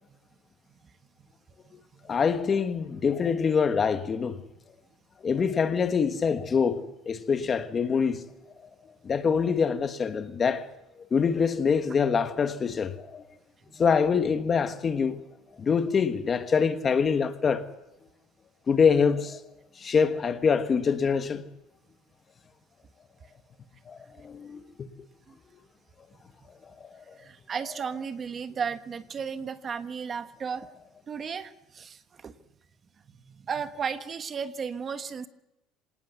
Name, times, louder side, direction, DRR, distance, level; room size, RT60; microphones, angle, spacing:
voice 1, 2.1-4.4 5.2-8.3 9.0-10.6 11.1-13.2 13.8-15.2 15.6-17.6 18.7-19.4 19.8-21.4 23.9-24.9 26.8-27.2, left 6 dB, 25° left, 1.4 m, -25 dB
voice 2, 27.2-30.7 31.1-32.3 33.2-35.3, right 6 dB, 25° right, 1.3 m, -34 dB
26.5 x 18.5 x 8.2 m
cardioid pair, 165°, 0 cm